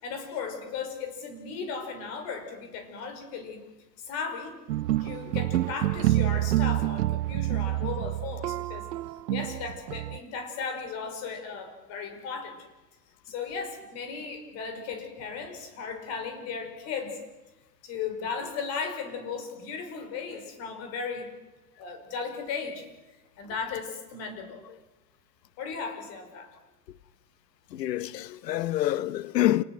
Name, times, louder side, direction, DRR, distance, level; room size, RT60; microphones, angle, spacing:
voice 1, 0.0-3.6 4.0-4.6 5.0-8.9 9.3-12.7 13.3-17.2 17.8-21.3 21.8-22.8 23.4-24.6 25.6-26.5, left 5 dB, 30° left, 5.4 m, -36 dB
sound 1, 4.7-10.2, right 15 dB, 75° right, 0.8 m, -27 dB
voice 2, 27.7-29.6, left 14 dB, 75° left, 1.2 m, -26 dB
29.0 x 19.0 x 7.9 m
supercardioid pair, 165°, 49 cm